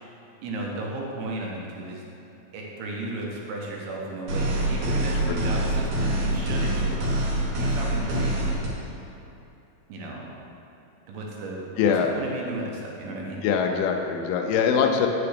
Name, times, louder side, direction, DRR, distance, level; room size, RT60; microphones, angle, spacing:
voice 1, 0.4-2.0 2.5-7.0 7.5-8.5 9.9-10.3 11.1-13.4, right 2 dB, 80° right, -2 dB, 3.0 m, -34 dB
sound 1, 4.3-8.7, right 1 dB, 65° right, 2.8 m, -25 dB
voice 2, 11.8-12.1 13.4-15.1, left 7 dB, 80° left, 4 dB, 2.4 m, -22 dB
9.4 x 6.9 x 3.4 m, 2.8 s
omnidirectional pair, 4.6 m